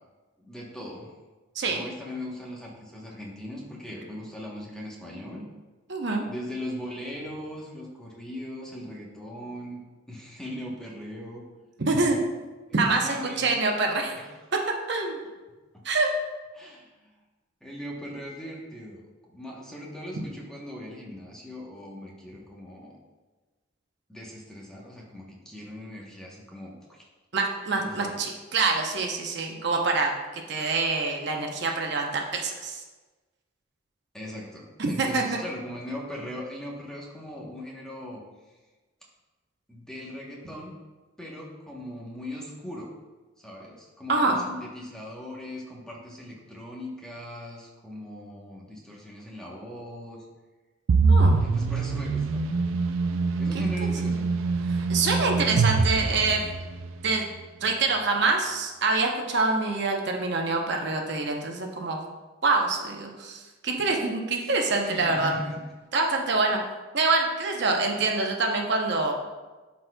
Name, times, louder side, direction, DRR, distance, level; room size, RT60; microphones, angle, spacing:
voice 1, 0.4-1.1 1.6-5.5 6.3-9.8 10.1-11.4 12.7-13.5 14.1-14.3 15.7-15.8 16.5-17.1 17.6-23.0 24.1-27.1 27.8-28.1 34.1-38.2 39.7-40.8 41.2-42.9 43.4-50.3 51.4-52.4 53.4-54.3 64.3-65.6, left 1 dB, 5° left, -3 dB, 1.0 m, -39 dB
voice 2, 5.9-6.3 11.8-12.2 12.7-14.1 14.9-15.2 15.8-16.1 27.3-32.8 34.8-35.2 44.1-44.4 51.1-51.4 54.7-56.4 57.0-57.2 57.6-62.0 62.4-65.3 65.9-66.6 66.9-69.1, right 3 dB, 60° right, 2 dB, 0.8 m, -25 dB
sound 1, 50.9-56.9, right 4 dB, 80° right, 0.4 m, -24 dB
12.0 x 4.1 x 2.2 m, 1.2 s
head